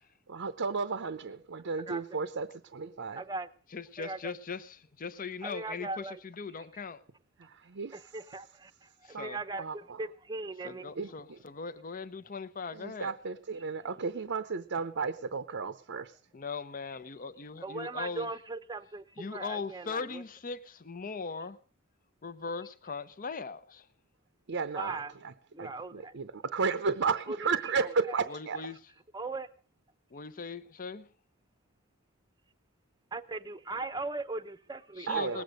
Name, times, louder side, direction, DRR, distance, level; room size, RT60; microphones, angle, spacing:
voice 1, 0.3-3.2 7.4-8.0 9.1-9.3 9.6-10.0 11.0-11.4 12.7-16.1 24.5-25.3 25.6-28.6 35.1-35.4, right 5 dB, 55° right, 0.7 m, -33 dB
voice 2, 1.9-2.2 3.2-3.5 4.0-4.3 5.4-6.2 7.9-10.9 17.6-20.2 24.7-25.1 25.5-26.1 27.3-28.2 29.1-29.5 33.1-35.4, right 3 dB, 20° right, 0.7 m, -39 dB
voice 3, 3.7-7.0 9.0-9.4 10.6-13.1 16.3-18.3 19.2-21.6 22.2-23.9 28.3-28.8 30.1-31.1 35.0-35.4, left 4 dB, 40° left, 0.7 m, -39 dB
19.5 x 8.5 x 6.4 m
head